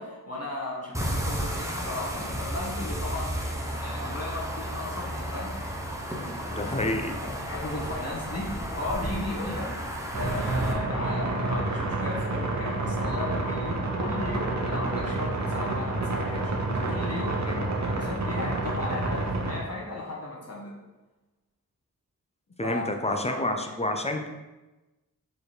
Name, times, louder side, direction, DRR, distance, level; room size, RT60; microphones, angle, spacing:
voice 1, 0.0-3.5 3.8-5.9 6.1-20.7 22.6-23.8, left 2 dB, 45° left, -4 dB, 1.3 m, -36 dB
sound 1, 0.9-10.7, equal, 10° right, 0.8 m, -33 dB
voice 2, 6.5-7.2 17.5-17.7 22.6-24.3, left 1 dB, 20° left, 5 dB, 0.6 m, -29 dB
sound 2, 10.1-19.6, right 2 dB, 55° right, 1.0 m, -29 dB
4.8 x 4.1 x 5.0 m, 1.1 s
wide cardioid pair, 100°, 33 cm